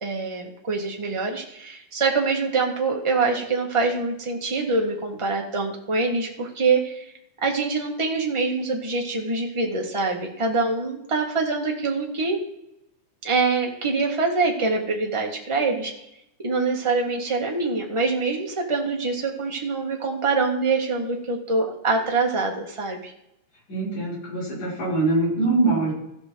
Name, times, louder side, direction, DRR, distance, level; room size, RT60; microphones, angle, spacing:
voice 1, 0.0-7.0 7.4-12.4 13.2-15.9 16.4-23.1, right 3 dB, 15° right, 0 dB, 0.9 m, -24 dB
voice 2, 23.7-25.9, right 2 dB, 85° left, -7 dB, 6.7 m, -23 dB
16.0 x 5.5 x 4.7 m, 0.83 s
omnidirectional pair, 3.3 m